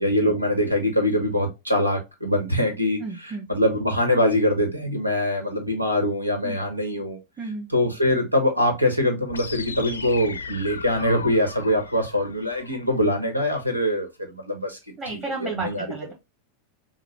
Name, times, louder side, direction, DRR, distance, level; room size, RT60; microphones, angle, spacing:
voice 1, 0.0-3.0 3.5-7.2 7.7-14.8 15.1-15.9, left 1 dB, 85° right, 1.2 m, -23 dB
voice 2, 3.0-3.5 6.4-6.6 7.4-7.7 15.0-16.1, right 3 dB, 25° right, 1.4 m, -32 dB
sound 1, 9.3-13.3, left 4 dB, 75° left, 0.5 m, -37 dB
5.7 x 2.1 x 3.0 m
figure-of-eight pair, 90°, 0 cm